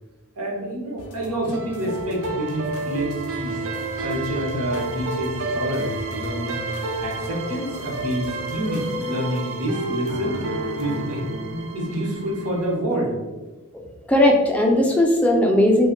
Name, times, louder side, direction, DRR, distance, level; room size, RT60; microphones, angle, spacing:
voice 1, 0.4-3.6 4.0-6.7 7.0-10.4 10.7-13.1, right 1 dB, 80° right, -1 dB, 0.8 m, -28 dB
sound 1, 1.0-9.0, left 2 dB, 70° left, 0.4 m, -40 dB
sound 2, 1.5-12.8, right 2 dB, 60° right, 0.4 m, -30 dB
voice 2, 13.7-15.9, left 1 dB, 5° left, 0 dB, 0.3 m, -18 dB
2.5 x 2.1 x 3.7 m, 1.2 s
head